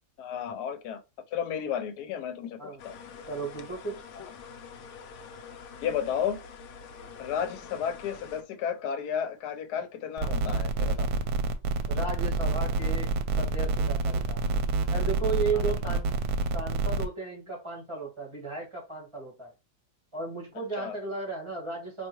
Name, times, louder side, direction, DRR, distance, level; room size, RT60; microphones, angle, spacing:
voice 1, 0.2-1.0 1.3-2.9 5.8-6.4 7.2-11.1 15.5-16.0 20.8-20.9, left 8 dB, 85° left, 1.1 m, -33 dB
sound 1, 2.8-8.4, left 5 dB, 65° left, 0.8 m, -46 dB
voice 2, 3.3-4.0 11.9-13.1 13.4-14.4 14.9-16.1 16.5-19.5 20.1-22.1, right 4 dB, 20° right, 1.3 m, -34 dB
sound 2, 10.2-17.1, right 3 dB, 80° right, 1.1 m, -28 dB
4.5 x 2.8 x 2.9 m
omnidirectional pair, 1.7 m